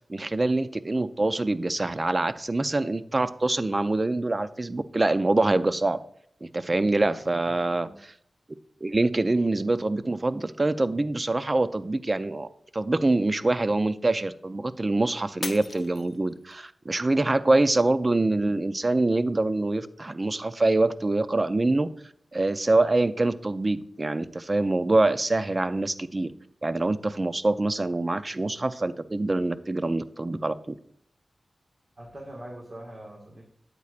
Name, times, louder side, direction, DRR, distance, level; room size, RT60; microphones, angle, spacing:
voice 1, 0.1-6.0 6.4-8.1 8.8-12.5 12.7-21.9 22.3-26.3 26.6-30.7, right 2 dB, 30° right, 12 dB, 0.4 m, -25 dB
voice 2, 7.4-8.0 32.0-33.4, right 1 dB, 50° right, -3 dB, 1.7 m, -43 dB
Shatter, 15.4-16.7 17.2-17.7 18.2-18.3, left 4 dB, 60° left, 0.5 m, -38 dB
8.5 x 8.3 x 2.5 m, 0.67 s
wide cardioid pair, 90°, 0 cm